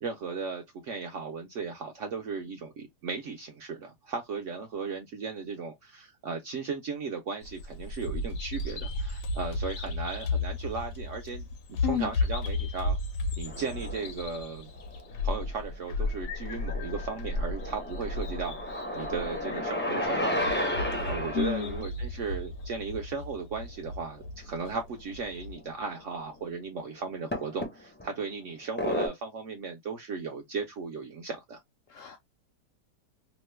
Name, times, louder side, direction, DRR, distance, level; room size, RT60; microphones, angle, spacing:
voice 1, 0.0-13.0 13.4-14.7 15.2-31.6, right 5 dB, 70° right, 0.7 m, -36 dB
Bird vocalization bird call bird song, 7.4-25.5, left 2 dB, 90° left, 1.3 m, -34 dB
sound 1, 13.5-14.1 14.8-15.7 16.1-21.8 24.2-24.3 24.6-24.8 25.6-25.7 27.3-28.1 28.8-29.1, left 1 dB, 15° left, 0.4 m, -33 dB
voice 2, 20.9-21.8 31.9-32.2, left 9 dB, 70° left, 0.7 m, -32 dB
3.0 x 2.1 x 3.1 m
omnidirectional pair, 1.8 m